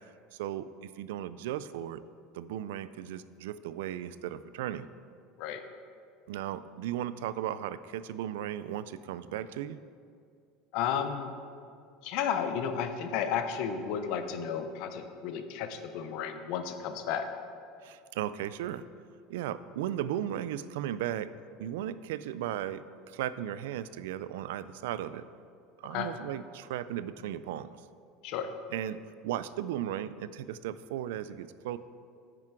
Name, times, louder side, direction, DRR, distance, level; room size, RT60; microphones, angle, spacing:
voice 1, 0.3-2.0 2.3-4.9 6.3-9.8 17.8-18.9 19.3-21.3 21.6-25.2 25.8-27.8 28.7-31.8, right 11 dB, 90° right, 15 dB, 0.3 m, -36 dB
voice 2, 10.7-11.3 12.0-17.3 25.9-26.1 28.2-28.5, left 8 dB, 60° left, 8 dB, 0.7 m, -33 dB
8.8 x 6.0 x 4.7 m, 2.4 s
supercardioid pair, 140°, 0 cm